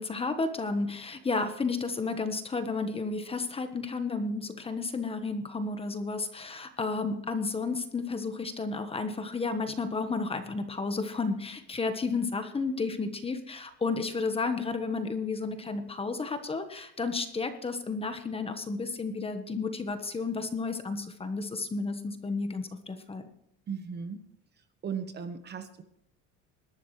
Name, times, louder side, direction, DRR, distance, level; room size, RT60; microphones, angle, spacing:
voice 1, 0.0-23.2, left 4 dB, 20° left, 8 dB, 1.3 m, -32 dB
voice 2, 23.7-24.2 24.8-25.8, right 6 dB, 35° right, 9 dB, 1.2 m, -36 dB
21.0 x 12.0 x 3.3 m, 0.75 s
cardioid pair, 140°, 31 cm